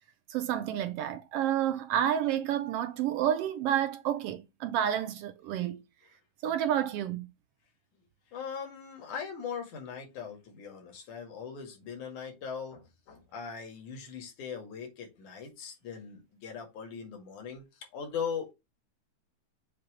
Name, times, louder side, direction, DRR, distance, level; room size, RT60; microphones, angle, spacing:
voice 1, 0.3-5.8 6.4-7.3, right 10 dB, 80° right, 1.4 m, -30 dB
voice 2, 8.3-18.5, left 6 dB, 85° left, 3.4 m, -40 dB
7.3 x 2.9 x 4.9 m
omnidirectional pair, 3.3 m